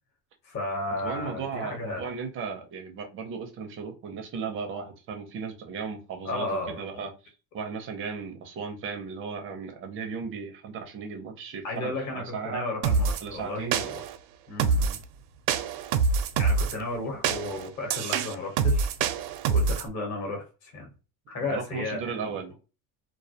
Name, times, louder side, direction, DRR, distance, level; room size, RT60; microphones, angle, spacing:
voice 1, 0.4-2.1 6.2-7.1 11.6-14.0 14.5-15.0 16.4-18.9 19.5-20.9 21.3-22.3, left 2 dB, 35° left, 0.9 m, -34 dB
voice 2, 1.0-7.1 7.5-12.6 13.2-13.8 21.4-22.5, right 5 dB, 30° right, 0.4 m, -36 dB
sound 1, 12.8-13.2 13.7-14.2 14.6-15.0 15.5-16.8 17.2-19.9, right 5 dB, 90° right, 0.5 m, -25 dB
2.3 x 2.1 x 2.6 m
cardioid pair, 150°, 46 cm